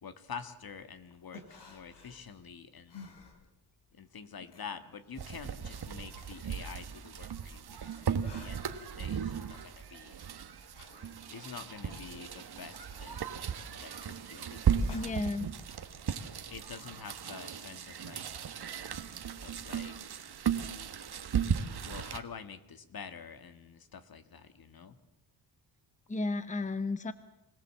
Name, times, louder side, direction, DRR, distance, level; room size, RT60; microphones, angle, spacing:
voice 1, 0.0-3.2 3.9-10.1 11.3-13.2 13.7-15.0 16.5-18.2 19.4-20.0 21.8-25.0, left 6 dB, 50° left, 10 dB, 1.6 m, -47 dB
sound 1, 0.9-3.9 4.2-7.5 7.9-15.6, left 4 dB, 70° left, 3.4 m, -55 dB
sound 2, 5.2-22.2, right 7 dB, 60° right, 1.5 m, -36 dB
voice 2, 14.9-15.5 26.1-27.1, left 3 dB, 15° left, 12 dB, 1.0 m, -33 dB
25.5 x 17.0 x 7.5 m, 0.90 s
cardioid pair, 95°, 44 cm